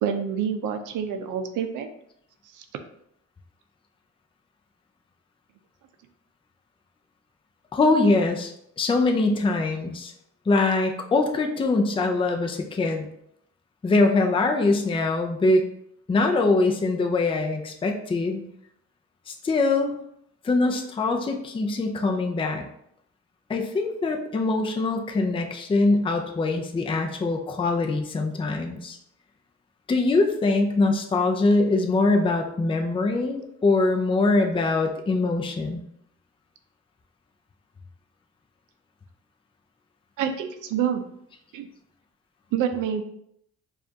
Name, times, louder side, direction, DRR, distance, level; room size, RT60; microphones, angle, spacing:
voice 1, 0.0-1.9 2.5-2.6 40.2-41.0 41.5-41.7 42.5-43.0, right 8 dB, 90° right, 7 dB, 0.5 m, -27 dB
voice 2, 7.7-10.1 10.5-13.1 13.8-15.7 16.1-18.4 19.3-20.0 20.4-22.6 23.5-29.0 29.9-35.8, left 3 dB, 20° left, 3 dB, 0.5 m, -23 dB
4.9 x 2.5 x 2.7 m, 0.72 s
cardioid pair, 90°, 30 cm